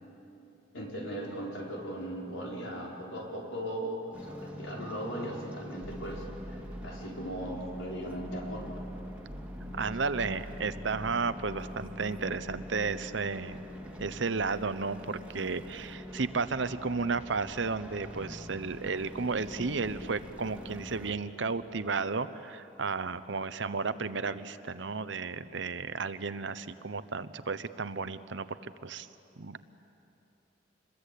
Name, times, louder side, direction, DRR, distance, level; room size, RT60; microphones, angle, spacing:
voice 1, 0.7-8.7, equal, 85° left, -2 dB, 4.9 m, -38 dB
sound 1, 4.1-21.1, equal, 5° right, 1.9 m, -43 dB
voice 2, 9.7-13.6 14.0-29.1 29.4-29.6, right 4 dB, 65° right, 13 dB, 0.8 m, -33 dB
27.0 x 22.0 x 8.5 m, 2.9 s
head